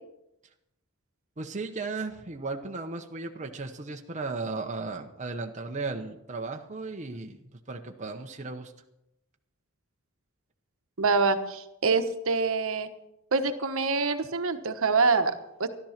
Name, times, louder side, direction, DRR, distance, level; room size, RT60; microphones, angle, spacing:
voice 1, 1.4-7.4 7.7-8.7, right 3 dB, 35° right, 3 dB, 0.9 m, -35 dB
voice 2, 11.0-12.9 13.3-15.3 15.6-15.7, right 4 dB, 65° right, 8 dB, 1.2 m, -25 dB
13.5 x 12.5 x 5.8 m, 0.87 s
head